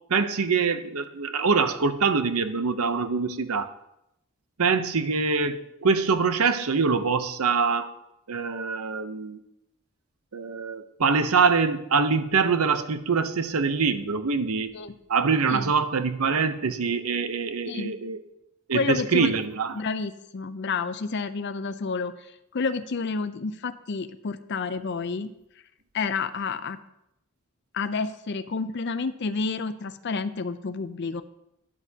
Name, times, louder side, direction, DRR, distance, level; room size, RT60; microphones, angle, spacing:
voice 1, 0.1-3.7 4.6-7.9 8.3-9.4 10.3-14.8 15.1-18.2 18.7-19.8, right 5 dB, 80° right, 10 dB, 0.8 m, -24 dB
voice 2, 18.7-19.3 19.7-25.3 25.9-26.8 27.7-31.2, left 4 dB, 50° left, 11 dB, 0.5 m, -30 dB
12.5 x 9.9 x 2.8 m, 0.82 s
head